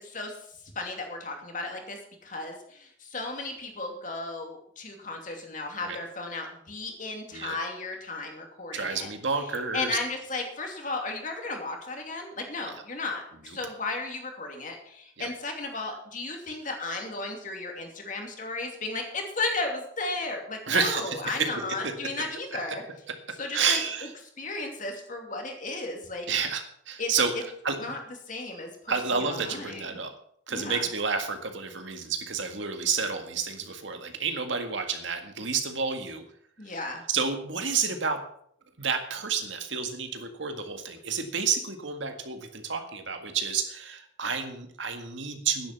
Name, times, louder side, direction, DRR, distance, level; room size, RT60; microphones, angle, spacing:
voice 1, 0.0-0.3 0.7-9.1 9.7-22.8 23.4-23.8 24.4-26.3 27.0-27.1 27.8-28.0 28.3-29.8 30.5-30.8 36.6-37.0, left 3 dB, 45° left, 2 dB, 2.7 m, -34 dB
voice 2, 8.7-10.0 13.5-13.6 15.2-15.3 20.7-21.5 21.8-21.9 23.1-24.1 26.3-27.8 28.9-30.1 30.5-36.2 37.1-38.2 38.8-45.7, right 5 dB, 75° right, 6 dB, 1.9 m, -30 dB
11.0 x 10.5 x 6.0 m, 0.66 s
head